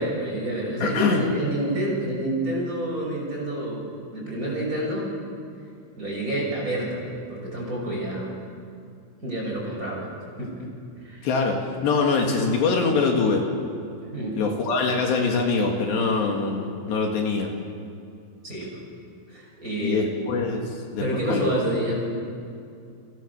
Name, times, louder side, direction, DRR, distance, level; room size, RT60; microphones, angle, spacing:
voice 1, 0.0-3.8 4.1-5.1 6.0-8.3 9.2-10.1 10.4-10.7 11.0-11.3 14.0-14.4 18.4-18.7 19.3-20.0 21.0-22.0, right 1 dB, 15° right, -2 dB, 6.0 m, -28 dB
voice 2, 0.8-1.2 11.2-13.5 14.4-17.5 19.8-21.0 21.3-21.5, left 4 dB, 65° left, 1 dB, 4.0 m, -23 dB
29.0 x 24.5 x 6.9 m, 2.5 s
omnidirectional pair, 5.4 m